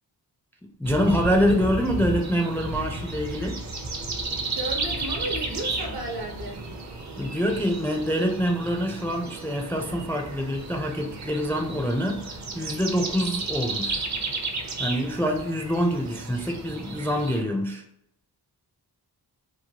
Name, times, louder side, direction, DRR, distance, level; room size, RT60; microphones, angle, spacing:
voice 1, 0.8-3.6 7.2-14.1 14.8-17.8, equal, 5° left, 2 dB, 0.4 m, -25 dB
sound 1, 0.8-17.4, right 2 dB, 45° right, 0.6 m, -33 dB
voice 2, 4.5-6.6, right 1 dB, 65° right, 1 dB, 0.9 m, -33 dB
3.0 x 2.2 x 2.8 m, 0.77 s
cardioid pair, 65°, 41 cm